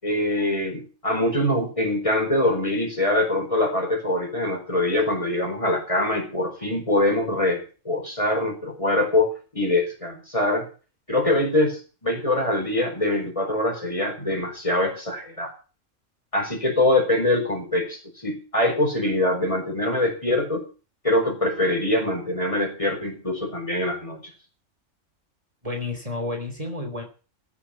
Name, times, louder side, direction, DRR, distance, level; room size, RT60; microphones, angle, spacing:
voice 1, 0.0-10.7 11.1-15.5 16.3-20.7 21.0-24.2, left 1 dB, 25° left, 2 dB, 4.8 m, -24 dB
voice 2, 25.6-27.0, left 2 dB, 25° right, 3 dB, 3.4 m, -30 dB
17.5 x 7.1 x 7.1 m, 0.35 s
omnidirectional pair, 1.3 m